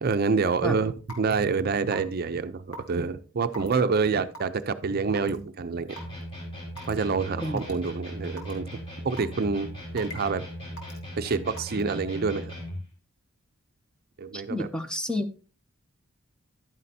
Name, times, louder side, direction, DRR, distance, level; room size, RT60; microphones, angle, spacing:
voice 1, 0.0-6.0 6.9-10.5 11.2-12.5 14.2-14.7, right 4 dB, 45° right, 0.5 m, -27 dB
Raindrop / Water tap faucet / Drip, 1.1-1.3 1.9-2.2 2.7-2.9 3.5-3.7 4.3-4.6 5.2-5.4 6.0-6.1 6.8-6.9 7.6-7.7 8.4-8.5 9.2-9.4 10.0-10.3 10.8-11.0 11.6-11.8, equal, 90° left, 2.3 m, -41 dB
sound 1, 5.9-12.9, equal, 25° left, 4.0 m, -39 dB
voice 2, 14.5-15.4, left 1 dB, 5° left, 0.5 m, -29 dB
11.0 x 9.4 x 2.7 m
head